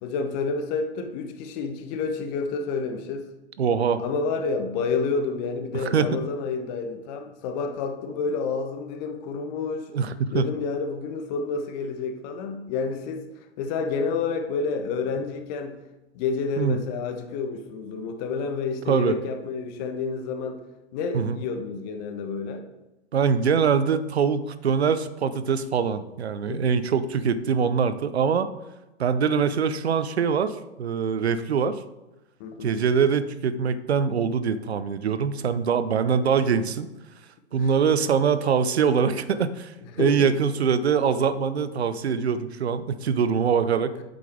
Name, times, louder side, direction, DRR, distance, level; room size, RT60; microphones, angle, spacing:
voice 1, 0.0-3.3 4.0-9.9 10.3-13.2 13.6-15.8 16.1-20.6 20.9-22.6 26.5-26.7 32.4-32.8 37.5-37.7 39.8-40.3 44.0-44.1, left 4 dB, 35° left, 6 dB, 1.1 m, -29 dB
voice 2, 3.6-4.0 5.7-6.1 9.9-10.5 16.6-16.8 18.9-19.2 21.1-21.4 23.1-28.5 29.0-31.8 32.6-36.9 37.5-43.9, right 6 dB, 70° right, 13 dB, 0.7 m, -23 dB
8.2 x 8.0 x 3.5 m, 0.98 s
figure-of-eight pair, 105°, 34 cm